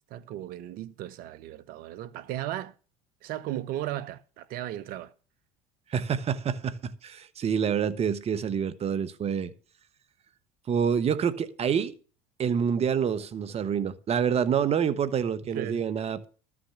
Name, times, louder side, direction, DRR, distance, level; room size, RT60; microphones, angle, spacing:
voice 1, 0.1-2.7 3.2-5.1 14.6-14.7 15.5-15.8, right 13 dB, 60° right, 0.9 m, -36 dB
voice 2, 5.9-9.5 10.7-11.9 12.4-16.3, right 7 dB, 40° right, 1.1 m, -27 dB
13.0 x 6.1 x 6.6 m
hypercardioid pair, 80°, 16 cm